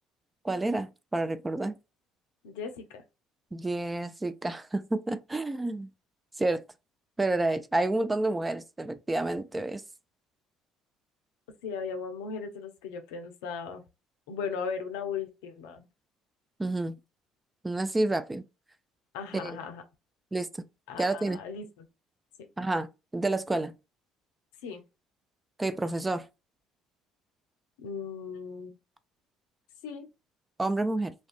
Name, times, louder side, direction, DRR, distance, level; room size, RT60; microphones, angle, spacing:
voice 1, 0.4-1.8 3.5-5.9 6.4-6.6 7.2-9.8 16.6-17.0 17.6-18.4 19.3-19.6 20.3-20.5 21.0-21.4 22.6-22.9 23.1-23.7 25.6-26.2 30.6-31.1, right 2 dB, 15° right, 0.3 m, -29 dB
voice 2, 2.4-3.0 11.6-13.8 14.3-15.9 19.1-19.8 20.9-21.9 22.4-22.5 24.6-24.8 27.8-28.8 29.8-30.1, left 6 dB, 75° left, 0.5 m, -37 dB
2.3 x 2.2 x 2.4 m
hypercardioid pair, 55°, 0 cm